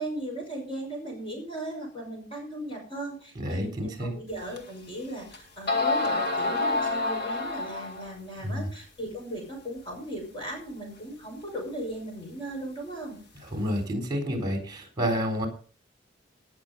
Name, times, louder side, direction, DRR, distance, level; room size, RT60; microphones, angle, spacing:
voice 1, 0.0-13.2, right 1 dB, 30° left, 0 dB, 5.8 m, -37 dB
voice 2, 3.4-4.1 8.4-8.7 13.5-15.5, equal, 25° right, 3 dB, 3.8 m, -29 dB
sound 1, 4.6-4.7 5.3-5.4 5.7-8.1, left 3 dB, 55° left, 2.1 m, -27 dB
18.5 x 6.8 x 5.4 m, 0.41 s
head